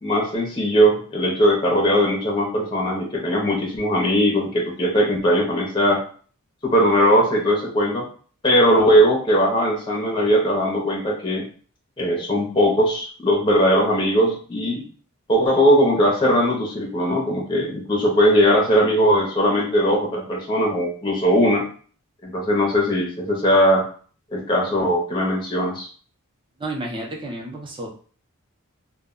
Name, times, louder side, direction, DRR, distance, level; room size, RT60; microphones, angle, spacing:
voice 1, 0.0-6.0 6.6-8.1 8.4-11.4 12.0-14.8 15.3-21.7 22.2-23.8 24.3-25.9, equal, 20° left, -1 dB, 0.6 m, -19 dB
voice 2, 26.6-27.9, right 1 dB, 20° right, 0 dB, 0.6 m, -31 dB
2.2 x 2.1 x 3.6 m, 0.43 s
head